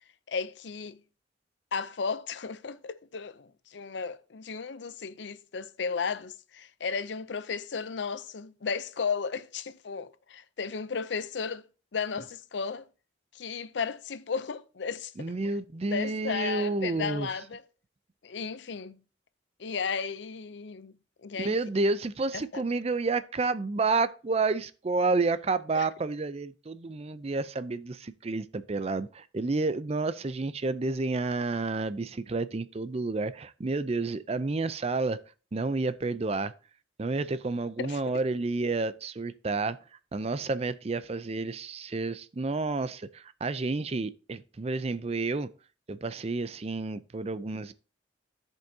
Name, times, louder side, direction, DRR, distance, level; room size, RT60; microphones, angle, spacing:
voice 1, 0.3-1.0 1.7-11.6 11.9-12.9 13.3-15.6 15.9-17.6 18.2-19.0 19.6-20.9 21.2-21.6 22.3-22.6 25.7-25.9 37.8-38.0, left 5 dB, 70° left, 0.5 m, -34 dB
voice 2, 15.2-17.3 21.4-35.2 35.5-36.5 37.0-39.8 40.1-45.5 45.9-47.7, right 3 dB, 35° right, 0.4 m, -30 dB
14.0 x 5.4 x 2.7 m
head